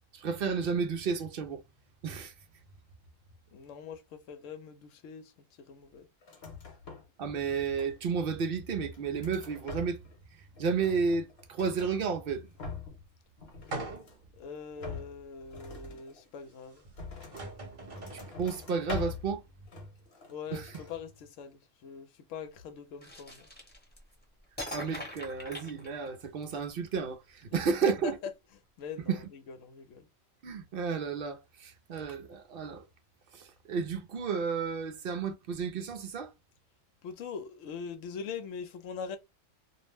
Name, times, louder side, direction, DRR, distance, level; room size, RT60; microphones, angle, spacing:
voice 1, 0.1-1.6 2.0-2.3 7.2-10.0 10.6-12.5 18.4-19.4 20.5-20.7 24.7-28.2 29.1-29.2 30.4-32.8 33.3-36.3, right 5 dB, 60° right, 0.6 m, -32 dB
voice 2, 3.5-5.3 5.7-6.1 14.4-16.8 20.3-23.5 27.8-28.3 28.8-30.1 37.0-39.2, left 6 dB, 75° left, 0.9 m, -42 dB
sound 1, 6.2-7.2 7.5-8.2 8.7-10.2 10.5-12.0 12.4-13.1 13.4-14.3 14.8-17.6 17.9-19.4 19.7-20.4 20.7-21.0, left 4 dB, 55° left, 1.1 m, -44 dB
sound 2, 13.7-14.3 14.9-15.0 16.8-16.9 17.2-18.4, right 2 dB, 40° right, 1.0 m, -41 dB
sound 3, 23.0-24.1 24.6-26.4, left 1 dB, 10° left, 0.8 m, -42 dB
2.5 x 2.0 x 3.2 m
omnidirectional pair, 1.4 m